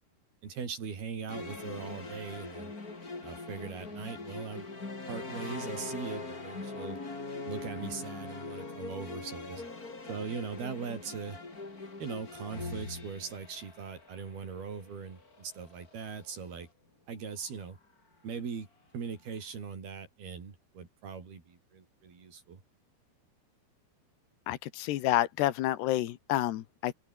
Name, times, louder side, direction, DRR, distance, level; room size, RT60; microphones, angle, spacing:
voice 1, 0.4-2.7 3.2-4.7 5.1-7.0 7.5-9.6 10.1-11.4 12.0-16.7 17.1-17.8 18.2-18.7 18.9-22.6, right 6 dB, 65° right, 6.7 m, -40 dB
sound 1, 1.3-16.6, left 3 dB, 20° left, 3.9 m, -42 dB
voice 2, 24.5-26.9, left 14 dB, 80° left, 3.3 m, -29 dB
open air
omnidirectional pair, 4.7 m